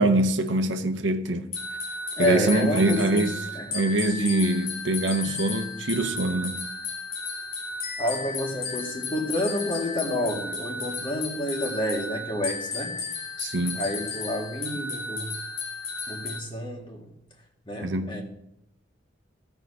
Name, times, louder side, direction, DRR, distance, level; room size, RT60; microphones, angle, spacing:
voice 1, 0.0-1.5 2.2-3.4 3.7-6.6 13.4-13.8 17.8-18.2, right 2 dB, 70° right, 0.9 m, -24 dB
sound 1, 1.5-16.4, left 4 dB, 85° left, 1.7 m, -34 dB
voice 2, 2.2-3.7 8.0-13.0 13.7-15.4 16.1-17.1 17.7-18.2, left 1 dB, 25° left, 1.6 m, -29 dB
14.5 x 4.9 x 4.8 m
head